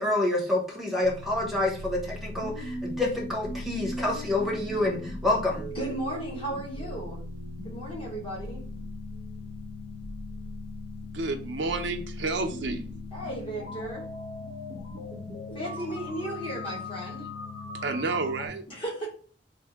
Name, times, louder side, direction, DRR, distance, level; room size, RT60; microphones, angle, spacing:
voice 1, 0.0-5.6, left 2 dB, ahead, 0.9 m, -28 dB
sound 1, 1.0-18.5, left 2 dB, 85° left, 1.2 m, -38 dB
voice 2, 5.7-7.2 7.6-8.6 13.1-14.0 15.5-17.3 18.7-19.1, right 1 dB, 30° left, 1.4 m, -35 dB
voice 3, 11.1-12.9 17.8-18.6, right 3 dB, 85° right, 0.6 m, -30 dB
3.5 x 2.6 x 3.4 m
head